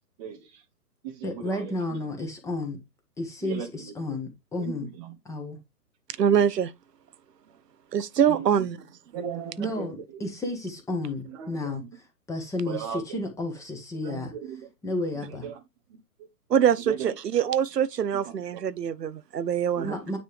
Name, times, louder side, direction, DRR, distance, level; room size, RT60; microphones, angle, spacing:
voice 1, 0.2-0.6 1.0-2.0 3.4-3.9 4.6-5.1 8.3-8.5 9.1-9.9 11.3-11.9 12.7-13.2 13.9-14.7 15.4-15.6 15.9-16.3 16.9-17.5 18.3-18.6 19.8-20.0, right 8 dB, 20° right, 0.8 m, -37 dB
voice 2, 1.2-2.8 3.2-4.9 5.2-5.6 9.6-14.3 14.8-15.5 19.8-20.2, left 2 dB, 5° left, 1.5 m, -32 dB
voice 3, 6.2-6.7 7.9-8.8 16.5-20.0, right 8 dB, 85° right, 0.8 m, -24 dB
9.4 x 4.3 x 3.4 m
hypercardioid pair, 140°, 47 cm